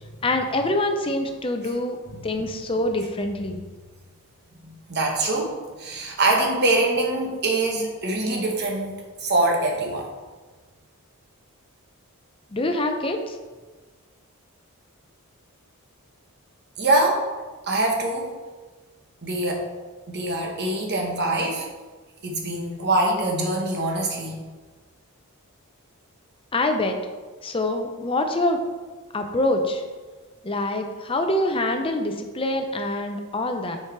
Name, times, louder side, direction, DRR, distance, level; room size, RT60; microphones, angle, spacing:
voice 1, 0.2-2.0 2.2-3.6 12.5-13.4 26.5-27.0 27.4-28.6 29.1-29.8 30.4-33.8, left 1 dB, 25° left, 5 dB, 0.6 m, -25 dB
voice 2, 4.6-5.5 5.8-10.1 16.8-17.2 17.6-18.3 19.2-19.6 20.1-21.7 22.2-24.4, right 2 dB, 50° right, 0 dB, 1.2 m, -24 dB
6.1 x 4.6 x 4.6 m, 1.3 s
head